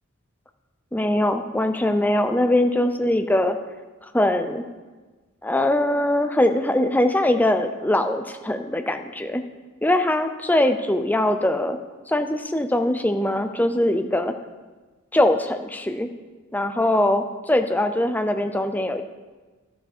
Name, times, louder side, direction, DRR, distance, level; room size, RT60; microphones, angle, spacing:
voice 1, 0.9-3.6 4.1-4.6 5.4-9.4 9.8-11.8 12.1-14.3 15.1-16.1 16.5-17.2 17.5-19.0, left 1 dB, 10° left, 7 dB, 0.5 m, -22 dB
12.5 x 7.0 x 4.4 m, 1.3 s
head